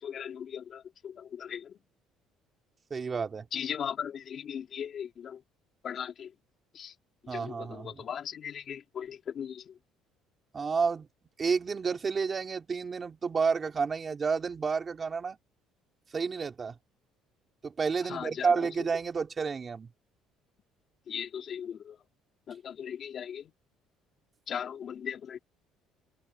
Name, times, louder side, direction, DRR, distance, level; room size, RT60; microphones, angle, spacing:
voice 1, 0.0-1.8 3.5-5.4 5.8-6.3 6.7-6.9 7.3-9.8 18.0-18.7 21.1-22.0 22.5-23.5 24.5-25.4, left 8 dB, 45° left, 3.1 m, -38 dB
voice 2, 2.9-3.5 7.3-8.0 10.5-11.1 11.4-15.4 16.1-16.7 17.6-19.9, right 5 dB, 25° right, 3.0 m, -30 dB
cardioid pair, 135°, 0 cm